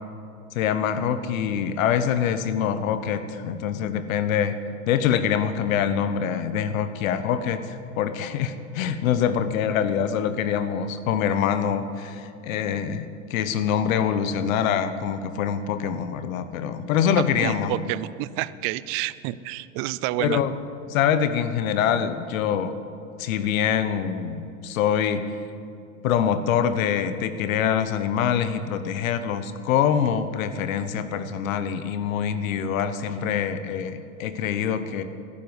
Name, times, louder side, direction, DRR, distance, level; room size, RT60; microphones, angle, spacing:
voice 1, 0.5-4.5 4.9-17.8 20.2-20.6 20.9-22.7 23.2-25.2 26.0-35.0, left 8 dB, 70° left, 11 dB, 1.2 m, -25 dB
voice 2, 17.4-20.4, right 16 dB, 35° right, 17 dB, 0.4 m, -29 dB
12.5 x 10.5 x 9.7 m, 2.5 s
hypercardioid pair, 125°, 42 cm